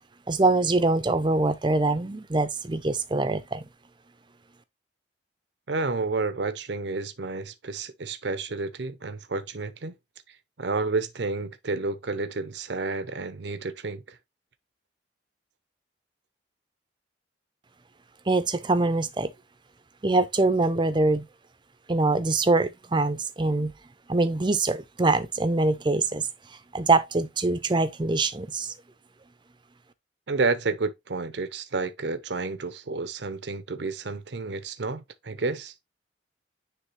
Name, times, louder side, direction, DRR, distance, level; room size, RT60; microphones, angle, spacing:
voice 1, 0.3-3.6 18.3-19.3 20.0-21.2 21.9-23.7 24.1-26.3 26.7-28.7, right 3 dB, 25° right, 0.6 m, -24 dB
voice 2, 5.7-9.9 10.3-14.2 30.3-35.7, right 3 dB, 70° right, 0.7 m, -30 dB
9.8 x 3.3 x 3.2 m
head